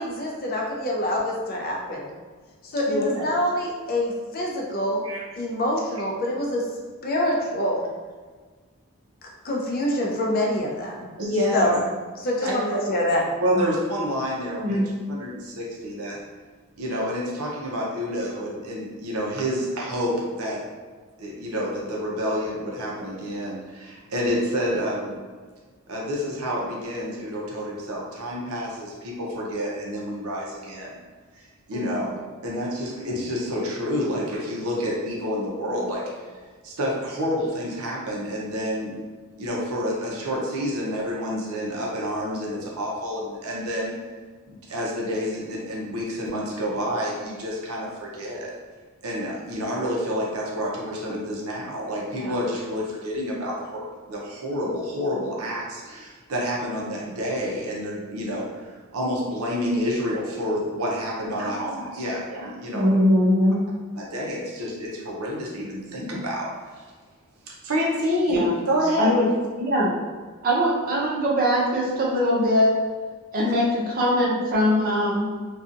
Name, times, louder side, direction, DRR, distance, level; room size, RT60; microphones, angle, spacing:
voice 1, 0.0-2.1 2.6-5.0 5.4-6.6 7.0-7.8 9.4-11.1 11.5-11.8 12.2-13.2, left 1 dB, 45° left, -2 dB, 0.5 m, -25 dB
voice 2, 2.9-3.2 5.0-5.2 11.2-11.8 12.4-13.0 13.4-14.8 15.1-16.2 16.8-20.6 21.2-25.2 25.9-31.0 31.4-36.0 36.6-38.9 39.4-44.0 44.5-48.5 49.0-63.0 64.0-66.8 67.5-69.2, equal, 85° right, -3 dB, 0.7 m, -28 dB
voice 3, 62.7-63.6 68.3-68.5 69.0-69.2 69.6-69.9 70.4-72.7 73.3-75.3, equal, 40° right, -3 dB, 0.6 m, -21 dB
2.6 x 2.3 x 2.5 m, 1.4 s
head